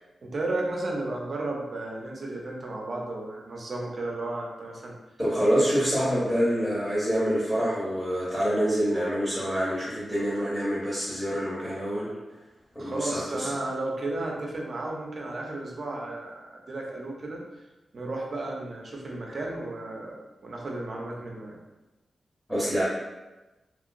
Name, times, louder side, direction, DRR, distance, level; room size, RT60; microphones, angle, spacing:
voice 1, 0.2-5.0 12.8-17.4 17.9-21.6, right 2 dB, 40° right, -1 dB, 0.5 m, -33 dB
voice 2, 5.2-12.1 12.7-13.5 22.5-22.8, equal, ahead, -9 dB, 0.8 m, -26 dB
2.9 x 2.7 x 2.5 m, 1.1 s
wide cardioid pair, 180°, 0 cm